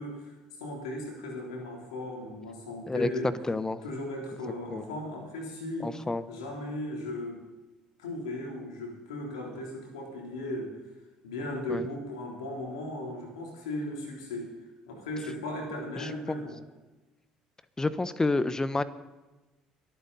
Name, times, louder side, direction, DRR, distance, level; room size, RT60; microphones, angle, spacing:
voice 1, 0.0-3.3 3.8-5.9 6.3-7.4 8.0-10.8 11.2-14.5 14.9-16.6, left 1 dB, 80° left, 0 dB, 3.5 m, -37 dB
voice 2, 3.5-3.8 4.7-5.0 5.8-6.2 11.7-11.9 16.0-16.1 17.8-18.8, left 2 dB, 20° left, 14 dB, 1.1 m, -29 dB
24.0 x 9.2 x 4.1 m, 1.1 s
hypercardioid pair, 60°, 3 cm